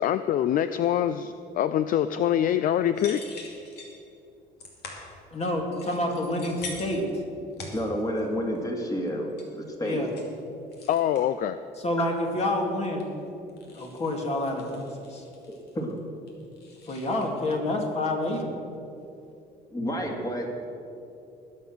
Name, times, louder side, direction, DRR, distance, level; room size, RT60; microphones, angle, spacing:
voice 1, 0.0-3.2 10.9-11.6, left 10 dB, 55° left, 12 dB, 0.4 m, -24 dB
sound 1, 2.9-4.0 4.6-5.1 5.7-7.1 7.5-8.3 8.5-8.8 9.1-9.5 9.9-10.3 10.7-11.3 12.1-13.2 13.5-16.0 16.3-17.3, left 3 dB, 75° left, 2.6 m, -44 dB
voice 2, 5.3-7.2 9.8-10.1 11.8-13.1 13.7-14.8 15.1-15.2 16.9-18.5, left 1 dB, 40° left, 1 dB, 2.6 m, -28 dB
voice 3, 7.7-9.3 9.5-10.1 12.0-12.1 15.5-15.9 19.7-20.6, equal, 20° left, 1 dB, 2.5 m, -30 dB
20.0 x 7.3 x 6.3 m, 2.7 s
cardioid pair, 110°, 17 cm